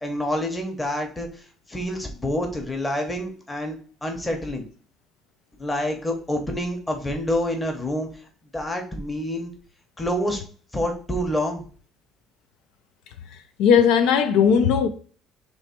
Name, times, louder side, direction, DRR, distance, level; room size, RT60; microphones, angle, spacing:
voice 1, 0.0-1.4 1.7-3.8 4.0-4.7 5.6-8.1 8.5-9.5 10.0-10.4 10.7-11.6, left 1 dB, 10° left, 0.8 m, -27 dB
voice 2, 13.6-14.9, left 7 dB, 80° left, 0.5 m, -17 dB
3.1 x 3.1 x 4.3 m
cardioid pair, 160°, 0 cm